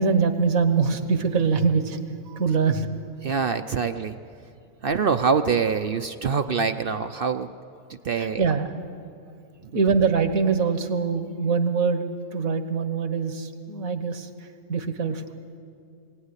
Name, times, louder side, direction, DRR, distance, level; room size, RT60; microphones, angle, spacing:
voice 1, 0.0-2.0 2.3-2.9 8.2-8.7 9.7-15.2, right 5 dB, 75° right, 8 dB, 1.8 m, -23 dB
voice 2, 3.2-4.2 4.8-7.5 7.9-8.4, right 5 dB, 50° right, 8 dB, 0.7 m, -24 dB
22.5 x 17.5 x 9.8 m, 2.4 s
omnidirectional pair, 1.5 m